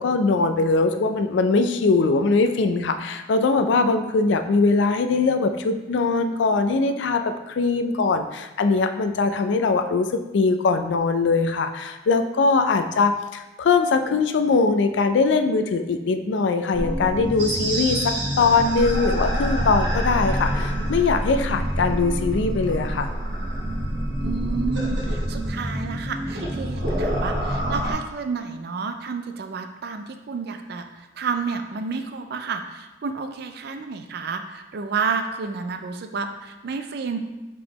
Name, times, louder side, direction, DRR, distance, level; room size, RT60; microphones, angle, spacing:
voice 1, 0.0-23.1, left 4 dB, 75° left, 8 dB, 0.4 m, -21 dB
sound 1, 16.7-27.9, equal, 80° right, 1.2 m, -26 dB
voice 2, 24.2-37.2, right 5 dB, 60° right, 7 dB, 0.4 m, -30 dB
4.9 x 3.5 x 3.1 m, 1.1 s
head